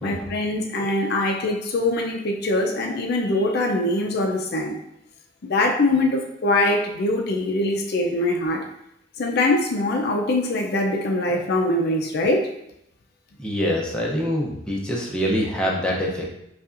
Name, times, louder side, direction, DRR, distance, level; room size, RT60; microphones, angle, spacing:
voice 1, 0.0-4.8 5.4-8.7 9.2-12.5, left 2 dB, 55° left, 2 dB, 0.4 m, -23 dB
voice 2, 13.4-16.3, equal, 5° left, -3 dB, 0.6 m, -25 dB
5.2 x 2.4 x 2.5 m, 0.79 s
head